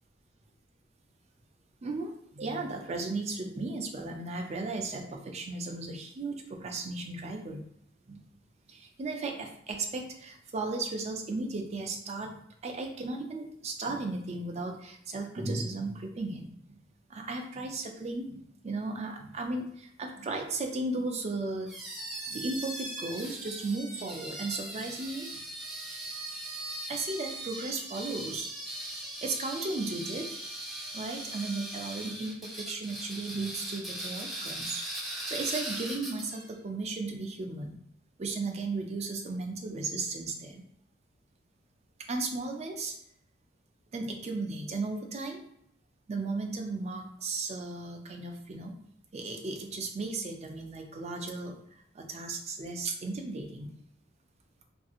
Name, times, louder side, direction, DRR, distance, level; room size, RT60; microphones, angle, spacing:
voice 1, 1.8-7.7 8.1-8.2 8.7-12.4 12.6-16.8 17.1-21.7 22.3-25.3 26.9-28.5 29.2-30.4 30.9-34.8 35.1-37.8 38.2-40.7 42.1-42.9 43.9-45.4 46.1-48.8 49.1-53.7, right 3 dB, 35° right, 3 dB, 0.4 m, -35 dB
sound 1, 21.7-36.5, right 1 dB, ahead, 0.7 m, -39 dB
2.7 x 2.6 x 2.4 m, 0.73 s
head